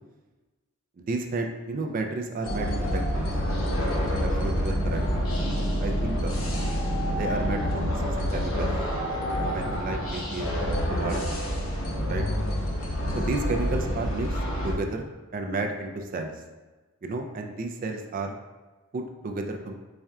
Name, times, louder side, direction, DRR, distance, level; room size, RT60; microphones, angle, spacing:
voice 1, 1.0-3.3 4.2-5.0 5.4-6.4 7.1-8.7 9.4-10.6 10.9-11.2 12.1-12.3 13.2-14.4 14.6-16.3 17.0-18.4 18.9-19.7, right 2 dB, 40° right, 4 dB, 0.3 m, -32 dB
sound 1, 2.4-14.7, equal, 75° left, 0.8 m, -27 dB
4.2 x 2.3 x 3.5 m, 1.2 s
head